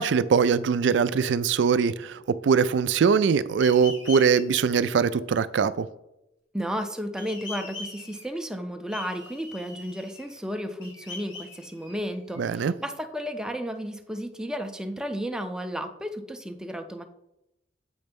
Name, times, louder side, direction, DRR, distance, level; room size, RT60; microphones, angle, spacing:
voice 1, 0.0-5.9 12.4-12.7, right 6 dB, 70° right, 0.4 m, -22 dB
sound 1, 3.6-4.4 7.2-8.4 8.9-10.4 10.8-12.4, left 3 dB, 80° left, 1.9 m, -41 dB
voice 2, 6.5-17.0, equal, 5° right, 0.5 m, -33 dB
7.8 x 3.2 x 5.2 m
head